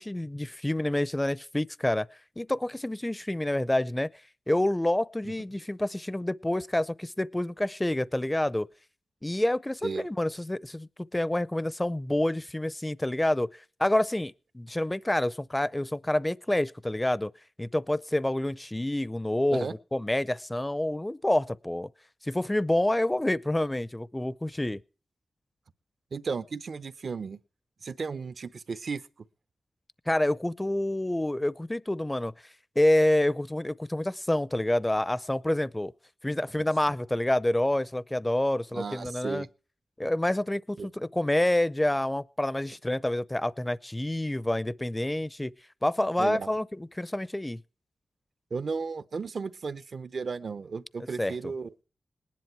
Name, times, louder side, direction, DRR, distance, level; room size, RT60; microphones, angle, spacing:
voice 1, 0.0-2.1 2.4-4.1 4.5-8.7 9.2-13.5 13.8-17.3 17.6-21.9 22.2-24.8 30.1-32.3 32.8-35.9 36.2-39.5 40.0-45.5 45.8-47.6 51.2-51.5, left 1 dB, 15° left, 0.6 m, -28 dB
voice 2, 26.1-27.4 27.8-29.0 38.7-39.5 40.8-40.9 46.2-46.5 48.5-51.7, right 5 dB, 60° right, 0.8 m, -34 dB
19.0 x 10.5 x 4.6 m
cardioid pair, 65°, 0 cm